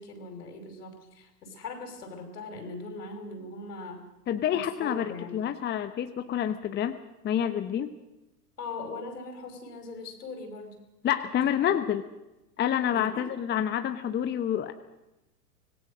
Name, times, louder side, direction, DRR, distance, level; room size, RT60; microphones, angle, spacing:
voice 1, 0.0-4.1 4.5-5.4 8.6-10.8 11.6-11.7 12.9-13.3, left 3 dB, 70° left, 6 dB, 5.4 m, -40 dB
voice 2, 4.3-7.0 7.2-7.9 11.0-12.1 12.6-14.7, left 10 dB, 20° left, 9 dB, 1.1 m, -28 dB
25.5 x 19.5 x 6.3 m, 0.97 s
hypercardioid pair, 105°, 49 cm